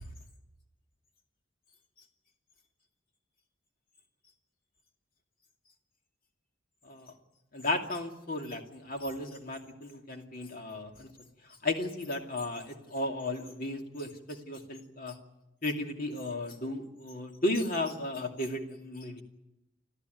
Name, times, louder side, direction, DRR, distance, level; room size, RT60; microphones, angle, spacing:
voice 1, 7.5-11.1 11.6-15.2 15.6-19.2, left 2 dB, 50° left, 3 dB, 2.5 m, -34 dB
29.5 x 13.0 x 9.3 m, 0.95 s
head